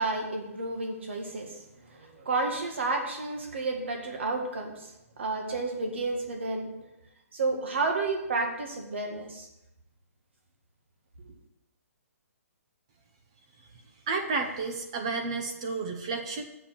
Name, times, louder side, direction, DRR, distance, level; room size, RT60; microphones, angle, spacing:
voice 1, 0.0-6.7 7.3-9.5, right 3 dB, 50° right, 3 dB, 1.9 m, -31 dB
voice 2, 14.1-16.4, right 4 dB, 20° right, 4 dB, 0.6 m, -31 dB
7.3 x 7.0 x 7.5 m, 0.90 s
hypercardioid pair, 175°, 8 cm